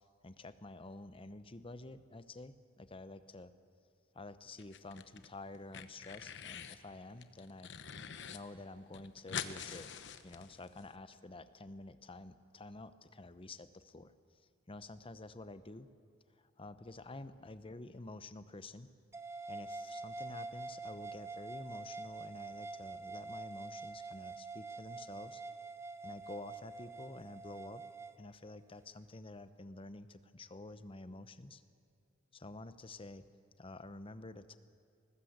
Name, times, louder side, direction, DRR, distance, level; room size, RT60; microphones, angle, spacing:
voice 1, 0.2-3.5 4.1-7.7 8.3-9.9 10.2-14.1 14.7-15.9 16.6-18.9 19.5-25.4 26.0-27.8 28.2-31.6 32.3-33.2 33.6-34.6, left 2 dB, 25° left, 12 dB, 0.8 m, -49 dB
sound 1, 4.6-5.3 5.5-6.8 7.2-8.4 8.7-8.8 8.9-10.9, left 7 dB, 60° left, 1.0 m, -45 dB
sound 2, 19.1-28.2, right 3 dB, 15° right, 0.8 m, -46 dB
21.5 x 19.0 x 8.0 m, 2.3 s
head